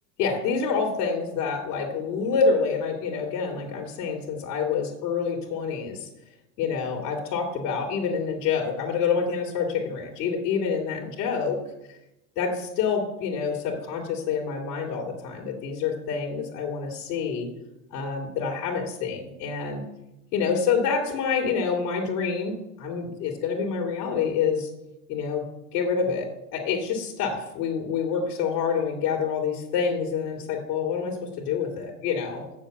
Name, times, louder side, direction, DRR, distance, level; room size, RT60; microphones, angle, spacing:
voice 1, 0.2-6.1 6.6-11.6 12.4-17.5 17.9-19.8 20.3-24.7 25.1-25.4 25.7-32.4, left 5 dB, 80° left, 0 dB, 2.5 m, -27 dB
7.2 x 7.1 x 7.9 m, 0.90 s
supercardioid pair, 105°, 45 cm